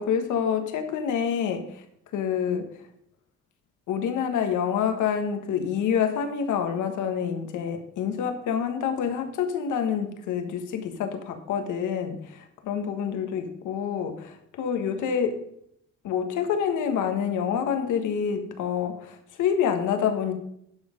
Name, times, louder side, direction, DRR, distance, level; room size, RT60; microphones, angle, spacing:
voice 1, 0.0-1.7 2.1-2.7 3.9-15.4 16.0-20.3, left 7 dB, 80° left, 7 dB, 1.4 m, -27 dB
11.5 x 5.4 x 5.1 m, 0.71 s
cardioid pair, 90°, 30 cm